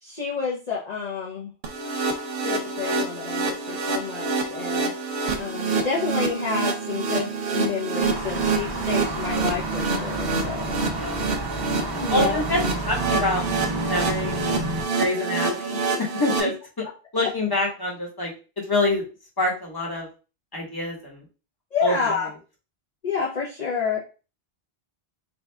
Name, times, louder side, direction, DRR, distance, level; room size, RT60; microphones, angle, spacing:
voice 1, 0.0-1.5 2.4-4.9 5.4-10.7 12.0-12.4 16.4-16.5 21.7-22.3 23.0-24.0, left 5 dB, 40° left, -4 dB, 0.9 m, -29 dB
sound 1, 1.6-16.4, right 4 dB, 65° right, 1.0 m, -27 dB
sound 2, 8.0-14.8, right 2 dB, 30° right, 0.5 m, -31 dB
voice 2, 10.9-11.2 12.1-13.4 13.8-14.7 15.0-16.8 17.1-19.0 19.4-20.1 20.5-21.2 21.8-21.9, left 1 dB, 20° left, -2 dB, 1.2 m, -26 dB
4.4 x 2.5 x 3.3 m, 0.33 s
omnidirectional pair, 1.1 m